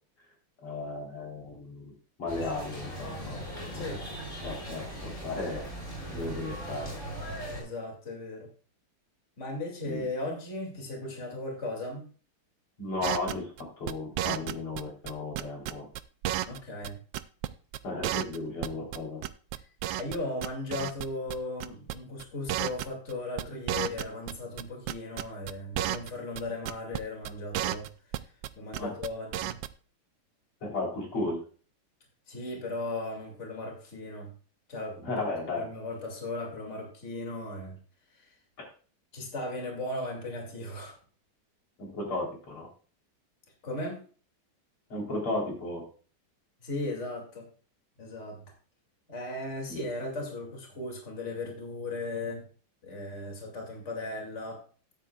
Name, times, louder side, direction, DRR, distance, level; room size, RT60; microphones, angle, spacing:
voice 1, 0.6-1.9 2.2-3.4 3.7-3.9 4.4-5.7 6.1-7.0 9.8-10.0 12.8-13.5 13.8-15.9 17.8-19.2 28.8-28.9 30.6-31.4 35.0-35.7 41.8-42.7 44.9-45.8 49.7-49.8, left 2 dB, 90° left, -1 dB, 4.4 m, -34 dB
sound 1, 2.3-7.6, right 1 dB, 15° left, 6.0 m, -39 dB
voice 2, 7.5-8.5 9.4-12.1 16.4-17.0 20.0-27.9 28.2-29.6 32.3-34.3 34.7-35.0 35.6-37.8 38.1-38.3 39.1-41.0 43.6-44.0 46.6-47.5 48.0-48.4 49.1-52.4 52.8-54.6, left 2 dB, 35° left, 1 dB, 2.7 m, -37 dB
sound 2, 13.0-14.8 15.1-16.6 16.8-16.9 17.1-17.5 17.7-17.8 18.0-19.0 19.2-20.2 20.4-21.0 21.3-21.4 21.6-21.9 22.2-22.3 22.5-23.1 23.4-24.6 24.9-26.1 26.4-26.5 26.7-27.0 27.2-28.5 28.7-29.1 29.3-29.7, right 13 dB, 75° right, 1.2 m, -32 dB
13.5 x 9.3 x 2.3 m, 0.40 s
omnidirectional pair, 2.3 m